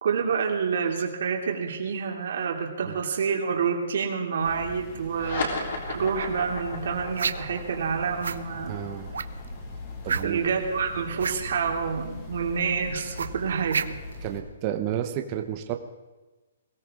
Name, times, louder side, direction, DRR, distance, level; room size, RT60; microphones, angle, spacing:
voice 1, 0.0-8.8 10.2-13.8, right 6 dB, 55° right, 1 dB, 2.8 m, -28 dB
sound 1, 4.4-14.4, left 2 dB, 20° left, 2.0 m, -41 dB
sound 2, 5.1-11.9, left 3 dB, 45° left, 3.7 m, -37 dB
sound 3, 7.2-7.6 8.2-8.4 9.1-9.5 10.1-10.5 11.1-11.4 13.2-14.2, right 6 dB, 85° right, 0.8 m, -29 dB
voice 2, 8.7-9.1 10.0-10.4 14.2-15.8, right 11 dB, 20° right, 5 dB, 0.8 m, -31 dB
22.0 x 17.0 x 3.7 m, 1.2 s
hypercardioid pair, 175°, 0 cm